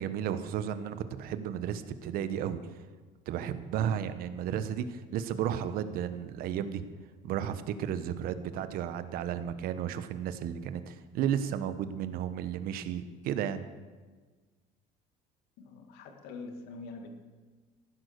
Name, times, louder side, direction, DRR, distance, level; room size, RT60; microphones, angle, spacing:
voice 1, 0.0-2.6 3.3-6.8 7.2-13.6, right 9 dB, 65° right, 11 dB, 1.1 m, -33 dB
voice 2, 15.6-17.1, left 3 dB, 80° left, 5 dB, 2.3 m, -44 dB
15.5 x 11.5 x 6.7 m, 1.4 s
cardioid pair, 140°, 16 cm